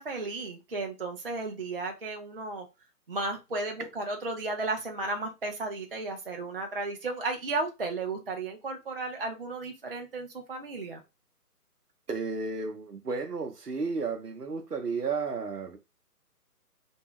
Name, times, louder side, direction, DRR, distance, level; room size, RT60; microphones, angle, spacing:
voice 1, 0.0-2.7 3.1-11.0, right 3 dB, 40° right, 0.5 m, -34 dB
voice 2, 12.1-15.8, right 4 dB, 75° right, 0.9 m, -33 dB
2.6 x 2.3 x 3.1 m
figure-of-eight pair, 140°, 47 cm